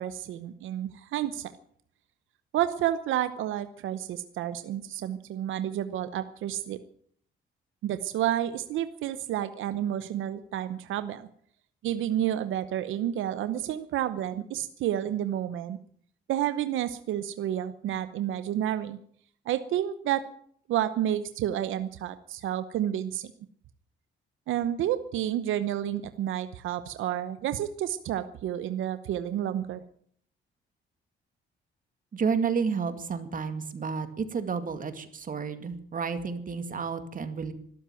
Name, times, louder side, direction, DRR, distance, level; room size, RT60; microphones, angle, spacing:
voice 1, 0.0-1.5 2.5-6.8 7.8-11.3 11.8-15.8 16.3-19.0 19.5-20.2 20.7-23.3 24.5-29.8, right 11 dB, 80° right, 12 dB, 0.9 m, -30 dB
voice 2, 32.1-37.5, right 5 dB, 45° right, 10 dB, 2.2 m, -31 dB
13.0 x 12.0 x 9.0 m, 0.63 s
cardioid pair, 90°, 20 cm